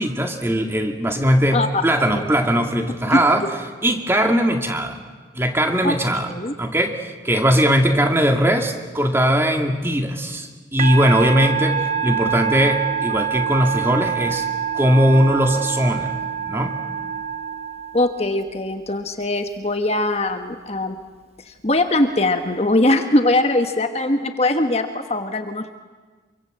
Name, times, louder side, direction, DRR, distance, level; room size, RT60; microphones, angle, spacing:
voice 1, 0.0-3.4 3.8-5.0 5.3-6.3 6.6-14.5 14.7-16.1 16.5-16.7, equal, 15° right, 4 dB, 2.3 m, -19 dB
voice 2, 1.5-2.2 3.1-3.2 5.8-6.0 6.3-6.5 17.9-21.0 21.5-25.7, left 2 dB, 35° left, 7 dB, 1.3 m, -21 dB
Musical instrument, 10.8-18.4, right 8 dB, 35° right, 1.0 m, -25 dB
26.0 x 24.5 x 7.9 m, 1.4 s
head